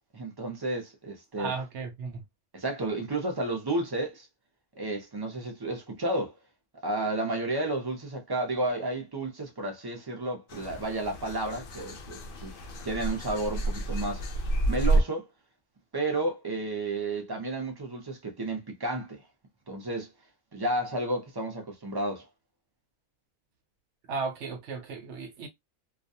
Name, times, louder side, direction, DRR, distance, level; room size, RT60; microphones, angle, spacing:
voice 1, 0.1-1.5 2.5-4.3 4.8-6.3 6.8-12.6 12.8-14.2 14.7-15.3 15.9-19.2 19.7-20.1 20.5-22.2, right 2 dB, 25° right, 0.6 m, -32 dB
voice 2, 1.4-2.2 24.1-25.5, right 4 dB, 75° right, 0.9 m, -35 dB
sound 1, 10.5-15.0, right 2 dB, 60° left, 0.6 m, -29 dB
2.4 x 2.2 x 2.6 m
omnidirectional pair, 1.2 m